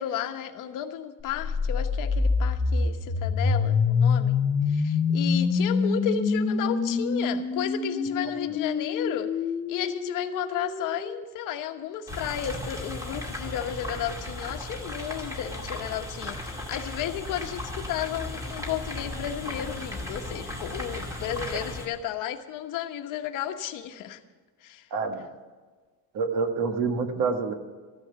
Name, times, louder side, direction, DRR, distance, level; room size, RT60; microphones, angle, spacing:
voice 1, 0.0-4.4 4.7-9.3 9.7-24.2 24.6-24.9, left 10 dB, 50° left, 6 dB, 1.2 m, -33 dB
sound 1, 1.3-11.2, left 4 dB, 15° left, 0.6 m, -26 dB
sound 2, 12.1-21.9, left 1 dB, 5° right, 2.2 m, -36 dB
voice 2, 24.9-25.3 26.1-27.5, right 4 dB, 50° right, 7 dB, 1.7 m, -27 dB
14.0 x 10.5 x 7.0 m, 1.4 s
cardioid pair, 170°, 42 cm